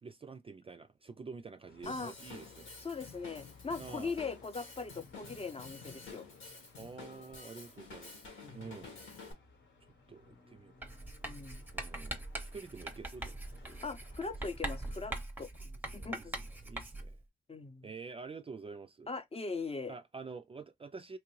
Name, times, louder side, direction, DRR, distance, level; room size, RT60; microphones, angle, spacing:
voice 1, 0.0-2.7 3.8-4.2 6.8-8.2 8.5-9.0 10.1-11.0 11.7-12.2 12.5-13.8 15.6-17.2 17.8-19.1 19.9-21.2, right 4 dB, 30° right, 0.3 m, -48 dB
sound 1, 1.7-15.2, left 3 dB, 70° left, 1.1 m, -60 dB
Drum kit / Drum, 1.8-9.3, left 4 dB, 90° left, 1.4 m, -50 dB
voice 2, 2.8-6.3 8.4-8.6 11.2-11.6 13.8-15.5 15.9-16.3 17.5-17.9 19.1-19.9, left 4 dB, 30° left, 0.6 m, -40 dB
Writing, 10.8-17.2, right 1 dB, 10° right, 0.7 m, -42 dB
3.0 x 2.5 x 3.0 m
cardioid pair, 60°, 20 cm